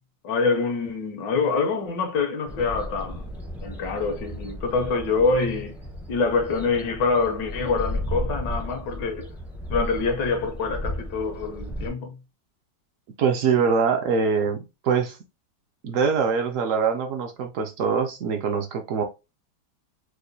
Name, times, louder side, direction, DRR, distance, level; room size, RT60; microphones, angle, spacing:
voice 1, 0.2-3.3 3.6-5.8 6.1-9.3 9.7-12.1, left 4 dB, 80° left, 1.5 m, -25 dB
sound 1, 2.5-11.9, left 1 dB, 5° right, 0.3 m, -34 dB
voice 2, 13.2-15.2 15.8-19.0, right 6 dB, 70° right, 0.8 m, -23 dB
4.8 x 2.2 x 2.6 m
omnidirectional pair, 1.9 m